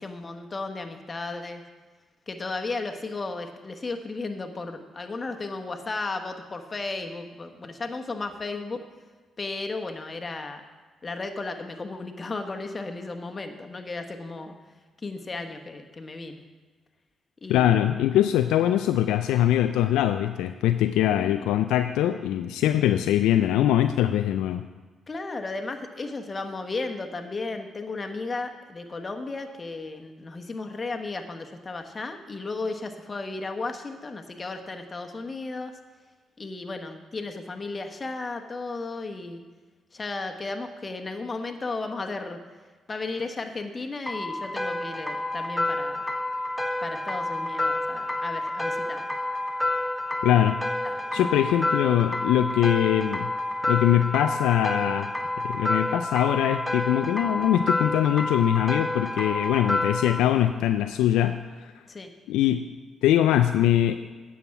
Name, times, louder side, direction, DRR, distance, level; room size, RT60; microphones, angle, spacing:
voice 1, 0.0-1.6 2.3-8.8 9.4-10.6 11.0-14.5 15.0-16.4 17.4-17.9 21.2-21.5 25.1-35.8 36.4-39.4 39.9-42.4 42.9-46.0 46.8-49.1 50.8-51.5 61.9-62.1, left 3 dB, 35° left, 5 dB, 1.3 m, -34 dB
voice 2, 17.5-24.6 50.2-50.6 51.1-53.3 53.7-55.1 55.4-61.7 62.3-62.6 63.0-64.0, left 12 dB, 80° left, 8 dB, 0.3 m, -22 dB
sound 1, 44.1-60.2, left 1 dB, 5° left, 1.1 m, -29 dB
9.3 x 7.2 x 5.9 m, 1.4 s
hypercardioid pair, 50°, 0 cm